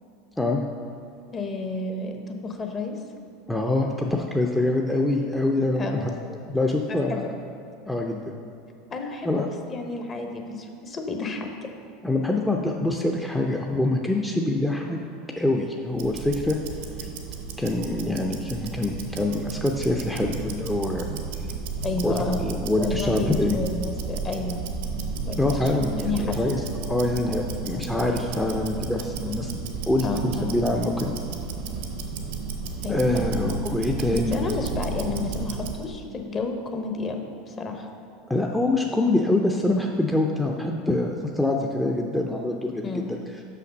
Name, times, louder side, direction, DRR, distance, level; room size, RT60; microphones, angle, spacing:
voice 1, 1.3-2.9 5.7-6.0 6.9-7.2 8.9-11.5 21.8-22.5 22.8-24.6 25.3-26.4 30.0-30.6 32.8-33.5 34.1-37.9 42.8-43.1, left 3 dB, 30° left, 3 dB, 1.0 m, -31 dB
voice 2, 3.5-6.1 6.5-7.3 7.9-8.4 9.2-9.5 12.0-15.0 15.4-16.6 17.0-17.1 17.6-21.1 22.0-23.6 25.4-29.5 29.9-31.1 32.9-34.5 38.3-43.2, left 2 dB, 5° left, 0 dB, 0.6 m, -25 dB
Tick-tock, 15.9-35.8, right 5 dB, 75° right, 0.8 m, -33 dB
5.9 x 5.8 x 5.2 m, 2.6 s
hypercardioid pair, 95°, 0 cm